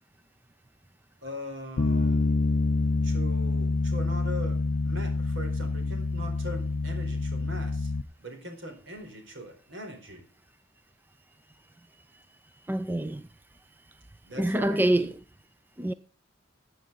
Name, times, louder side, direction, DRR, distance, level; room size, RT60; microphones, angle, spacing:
voice 1, 1.2-2.4 3.0-7.9 8.2-10.2 14.2-15.1, equal, 70° right, 4.3 m, -41 dB
Bass guitar, 1.8-8.0, left 3 dB, 65° left, 0.6 m, -27 dB
voice 2, 12.7-13.3 14.4-15.2 15.8-15.9, right 1 dB, 10° right, 0.4 m, -26 dB
14.5 x 8.4 x 4.0 m
head